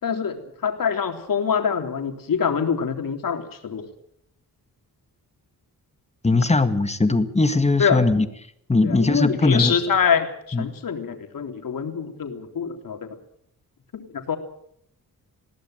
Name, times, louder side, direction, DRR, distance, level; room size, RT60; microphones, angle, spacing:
voice 1, 0.0-3.9 7.8-8.0 8.8-13.1 13.9-14.4, left 7 dB, 65° left, 5 dB, 3.5 m, -25 dB
voice 2, 6.2-8.3 8.7-9.8 10.5-10.7, left 3 dB, 20° left, 9 dB, 1.9 m, -20 dB
21.0 x 17.5 x 9.0 m, 0.70 s
wide cardioid pair, 115°, 36 cm